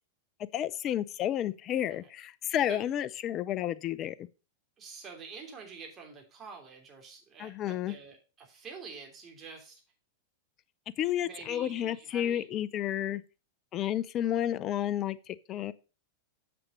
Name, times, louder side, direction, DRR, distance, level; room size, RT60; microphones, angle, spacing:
voice 1, 0.5-4.3 7.4-7.9 11.0-13.2 13.7-15.7, left 11 dB, 35° left, 0.6 m, -31 dB
voice 2, 4.8-9.8 11.2-12.5, right 5 dB, 30° right, 3.2 m, -47 dB
7.3 x 6.9 x 5.3 m
figure-of-eight pair, 95°, 0 cm